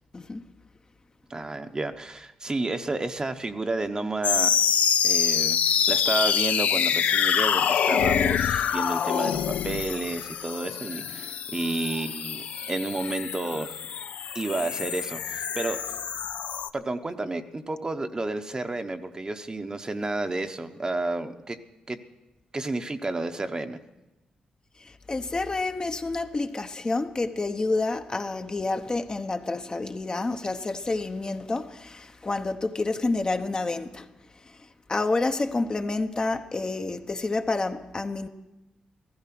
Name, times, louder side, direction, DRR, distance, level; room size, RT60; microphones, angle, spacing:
voice 1, 0.1-0.5 24.8-34.1 34.3-38.3, left 3 dB, 35° left, 0.9 m, -29 dB
voice 2, 1.3-4.6 5.0-13.7 14.3-15.8 16.7-21.6 21.9-22.0 22.5-23.8, right 2 dB, 30° right, 1.0 m, -31 dB
sound 1, 4.2-16.7, left 8 dB, 80° left, 0.5 m, -26 dB
15.0 x 14.5 x 6.0 m
cardioid pair, 70°, 2 cm